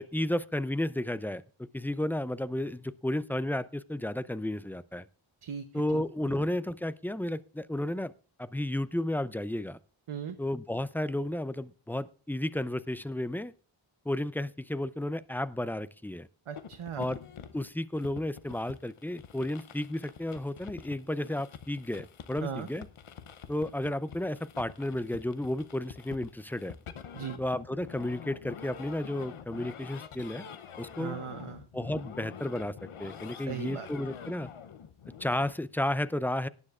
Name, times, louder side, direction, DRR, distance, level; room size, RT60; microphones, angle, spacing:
voice 1, 0.0-5.1 5.7-8.1 8.4-9.8 10.4-13.5 14.1-16.3 17.0-17.2 17.5-22.9 23.5-26.7 27.4-30.4 30.8-31.2 31.7-34.5 35.2-36.5, left 1 dB, 5° left, 16 dB, 0.4 m, -32 dB
voice 2, 5.4-6.0 10.1-10.4 16.5-17.1 22.4-22.7 27.1-27.4 31.0-31.6 33.4-33.9, right 8 dB, 85° right, 6 dB, 0.8 m, -38 dB
sound 1, 16.6-35.5, left 7 dB, 80° left, 0.7 m, -47 dB
18.5 x 9.9 x 2.4 m, 0.36 s
wide cardioid pair, 45°, 49 cm